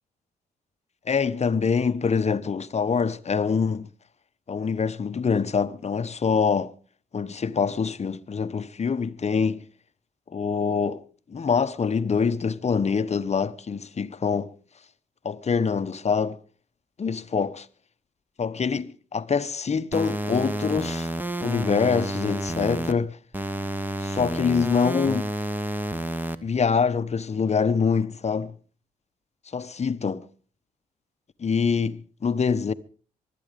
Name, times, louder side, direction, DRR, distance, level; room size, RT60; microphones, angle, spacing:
voice 1, 1.1-3.9 4.5-6.7 7.1-9.6 10.3-11.0 11.3-14.5 15.2-16.4 17.0-17.7 18.4-21.1 21.4-23.2 24.0-25.3 26.4-28.5 29.5-30.2 31.4-32.7, left 5 dB, 35° left, 1.0 m, -25 dB
sound 1, 19.9-22.9 23.3-26.3, right 1 dB, 10° right, 1.3 m, -30 dB
24.0 x 8.7 x 5.2 m
hypercardioid pair, 50°, 19 cm